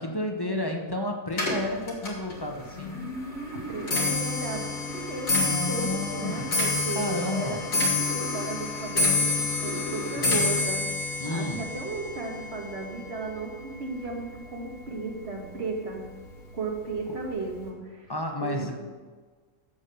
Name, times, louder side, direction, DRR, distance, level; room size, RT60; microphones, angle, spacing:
voice 1, 0.0-3.0 5.3-6.5 6.9-7.6 10.1-10.5 11.2-11.7 18.1-18.8, left 1 dB, 20° left, 2 dB, 1.1 m, -31 dB
Clock, 1.3-14.7 15.0-15.5 16.3-16.4 16.7-17.1 17.3-17.4, left 3 dB, 80° left, 2.8 m, -29 dB
voice 2, 3.7-16.1 16.5-18.1 18.4-18.7, right 3 dB, 50° right, 0 dB, 1.9 m, -35 dB
9.0 x 7.4 x 6.9 m, 1.5 s
omnidirectional pair, 1.4 m